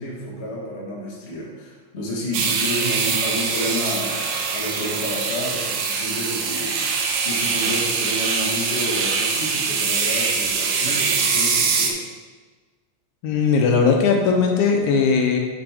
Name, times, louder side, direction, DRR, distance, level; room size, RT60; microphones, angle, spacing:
voice 1, 0.0-4.2 4.5-12.0, equal, 40° left, -4 dB, 0.9 m, -30 dB
sound 1, 2.3-11.9, right 5 dB, 75° right, 1.6 m, -23 dB
voice 2, 13.2-15.4, left 5 dB, 80° left, 3 dB, 2.0 m, -18 dB
5.9 x 5.5 x 3.6 m, 1.4 s
omnidirectional pair, 3.4 m